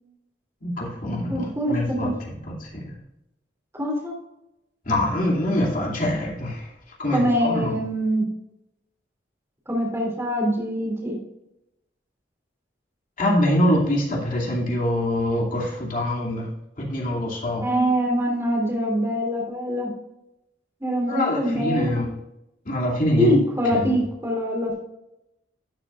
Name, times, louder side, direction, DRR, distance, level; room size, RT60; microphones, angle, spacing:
voice 1, 0.6-2.1 2.5-3.0 4.9-6.7 7.0-7.7 13.2-16.5 16.8-17.6 21.1-22.1 22.6-23.4 23.7-24.0, left 1 dB, 50° left, -3 dB, 2.7 m, -24 dB
voice 2, 1.3-2.1 3.8-4.1 7.1-8.2 9.7-11.2 17.6-19.9 20.8-21.9 23.2-24.7, equal, 15° right, -2 dB, 3.1 m, -24 dB
12.0 x 6.6 x 2.5 m, 0.87 s
head